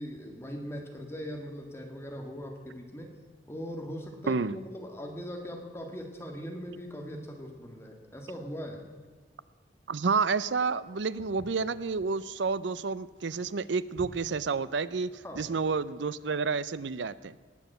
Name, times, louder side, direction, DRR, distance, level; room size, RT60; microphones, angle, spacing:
voice 1, 0.0-3.1 3.5-8.9 15.2-15.5, equal, 15° left, 2 dB, 1.8 m, -40 dB
voice 2, 4.3-4.6 9.9-15.1 15.4-17.4, right 4 dB, 75° right, 17 dB, 0.5 m, -30 dB
Walk footsteps, 11.2-15.7, equal, 80° left, 3.6 m, -51 dB
18.5 x 7.2 x 7.8 m, 1.5 s
head